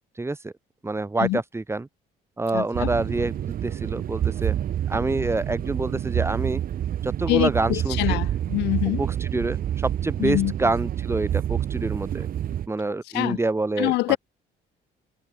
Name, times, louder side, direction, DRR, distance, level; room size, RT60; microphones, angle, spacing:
voice 1, 0.2-0.5 0.8-1.9 2.4-4.5 4.9-6.6 7.0-8.2 9.0-12.3 12.7-14.2, right 2 dB, 15° right, 7.4 m, -27 dB
voice 2, 2.5-2.9 7.3-9.0 10.2-10.5 13.1-13.4 13.8-14.2, left 20 dB, 90° left, 4.7 m, -25 dB
sound 1, 2.7-12.7, right 10 dB, 55° right, 5.6 m, -28 dB
cardioid pair, 110°, 17 cm